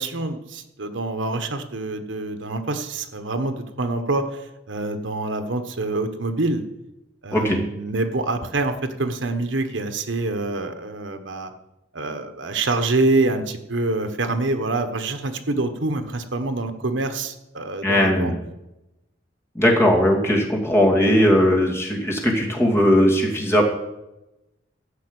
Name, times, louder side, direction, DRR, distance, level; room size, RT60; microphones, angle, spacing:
voice 1, 0.0-6.6 7.2-11.5 11.9-18.3, right 2 dB, 70° right, 8 dB, 1.3 m, -26 dB
voice 2, 17.8-18.3 19.5-23.6, equal, 15° left, -1 dB, 2.5 m, -18 dB
13.5 x 6.1 x 8.2 m, 0.94 s
head